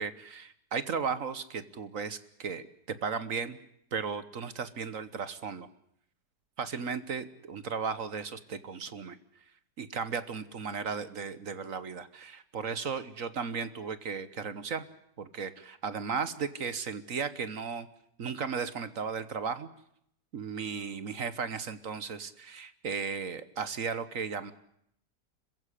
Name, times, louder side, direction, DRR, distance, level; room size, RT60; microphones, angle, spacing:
voice 1, 0.0-3.6 3.9-5.7 6.6-9.2 9.8-14.8 15.2-17.9 18.2-19.7 20.3-24.5, right 6 dB, 55° right, 14 dB, 1.5 m, -35 dB
27.0 x 15.5 x 9.9 m, 0.73 s
omnidirectional pair, 1.8 m